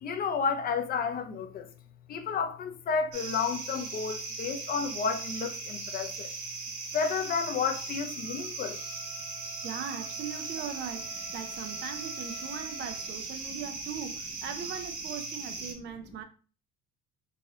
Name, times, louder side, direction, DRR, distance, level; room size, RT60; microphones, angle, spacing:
voice 1, 0.0-1.7 2.1-6.3 6.9-8.8, left 5 dB, 30° left, 0.4 m, -31 dB
sound 1, 3.1-15.7, right 4 dB, 75° right, 1.3 m, -38 dB
Wind instrument woodwind instrument, 8.6-13.2, right 1 dB, 10° right, 1.4 m, -50 dB
voice 2, 9.6-16.2, right 8 dB, 35° right, 0.4 m, -40 dB
3.1 x 2.7 x 2.7 m
cardioid pair, 130°, 31 cm